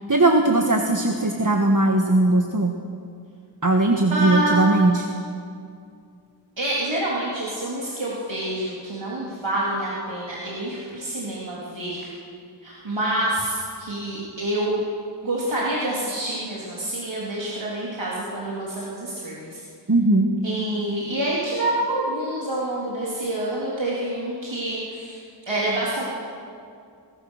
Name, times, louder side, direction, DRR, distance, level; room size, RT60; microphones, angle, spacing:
voice 1, 0.1-2.7 3.6-5.0 19.9-20.3, right 2 dB, 45° right, 2 dB, 1.6 m, -19 dB
voice 2, 4.1-4.8 6.6-12.1 12.6-14.8 15.2-19.6 20.4-25.2 25.5-26.0, right 1 dB, 90° right, -7 dB, 3.5 m, -27 dB
23.5 x 19.5 x 6.5 m, 2.4 s
wide cardioid pair, 50°, 44 cm